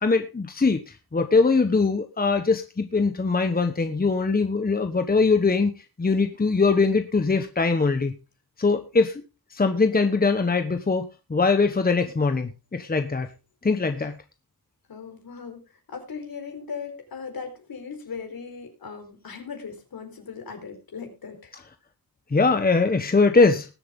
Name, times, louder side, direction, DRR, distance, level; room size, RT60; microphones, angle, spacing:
voice 1, 0.0-0.8 1.1-5.7 6.0-8.1 8.6-9.2 9.5-11.0 11.3-13.3 13.6-14.1 22.3-23.7, left 4 dB, 25° left, 7 dB, 1.2 m, -21 dB
voice 2, 14.9-21.6, left 5 dB, 70° left, 5 dB, 4.6 m, -38 dB
20.0 x 7.7 x 3.7 m, 0.29 s
wide cardioid pair, 100°, 37 cm